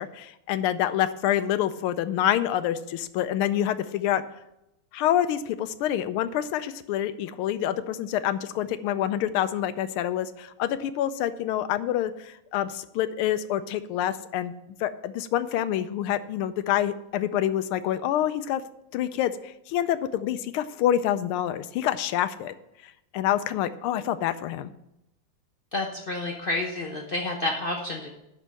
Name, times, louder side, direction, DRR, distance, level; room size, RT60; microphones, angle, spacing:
voice 1, 0.0-4.2 4.9-14.5 14.8-18.6 18.9-22.5 22.8-24.7, left 11 dB, 85° left, 12 dB, 1.5 m, -27 dB
voice 2, 25.7-28.1, left 2 dB, 65° left, 1 dB, 0.5 m, -29 dB
11.0 x 4.6 x 7.5 m, 0.87 s
omnidirectional pair, 2.3 m